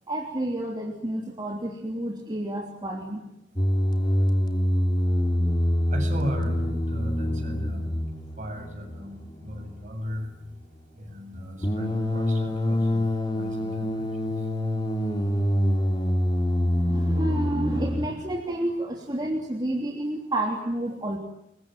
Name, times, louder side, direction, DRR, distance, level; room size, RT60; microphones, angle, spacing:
voice 1, 0.1-3.2 16.7-21.2, right 1 dB, 25° right, 1 dB, 3.1 m, -30 dB
sound 1, 3.6-18.1, left 1 dB, 25° left, 3.3 m, -26 dB
voice 2, 5.9-7.9 8.4-10.4 10.9-13.1 13.3-14.4, equal, 45° right, 4 dB, 7.9 m, -36 dB
28.5 x 23.0 x 8.9 m, 0.79 s
head